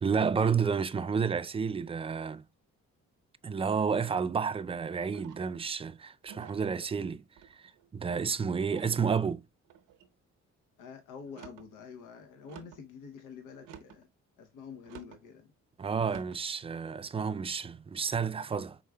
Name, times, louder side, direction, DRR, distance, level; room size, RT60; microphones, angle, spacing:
voice 1, 0.0-2.4 3.4-7.2 7.5-9.4 15.8-18.8, right 6 dB, 20° right, 0.3 m, -31 dB
sound 1, 5.1-5.6 6.3-6.7 7.4-7.9 8.6-9.0 9.7-10.1 11.2-11.7 12.5-12.9 13.6-14.1 14.9-15.2 16.0-16.4, right 8 dB, 85° right, 0.7 m, -51 dB
voice 2, 10.8-14.1 14.4-15.5, left 6 dB, 85° left, 0.8 m, -47 dB
4.8 x 3.6 x 2.2 m
cardioid pair, 90°, 30 cm